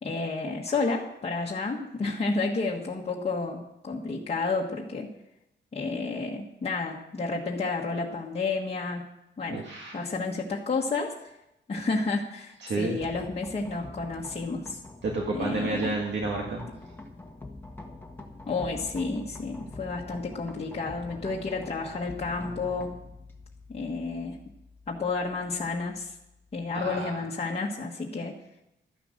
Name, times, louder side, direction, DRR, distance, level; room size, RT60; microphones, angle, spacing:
voice 1, 0.0-5.1 5.7-9.1 9.4-9.6 9.9-11.1 11.7-14.8 15.3-15.9 18.4-22.9 23.7-24.4 24.9-26.1 26.5-28.4, left 3 dB, 30° left, -3 dB, 1.5 m, -31 dB
voice 2, 9.5-10.0 12.6-13.0 15.0-16.6 26.7-27.1, right 3 dB, 60° right, 0 dB, 1.8 m, -30 dB
sound 1, 13.0-26.8, left 2 dB, 10° left, 1.5 m, -45 dB
13.0 x 10.0 x 6.6 m, 0.84 s
wide cardioid pair, 175°, 21 cm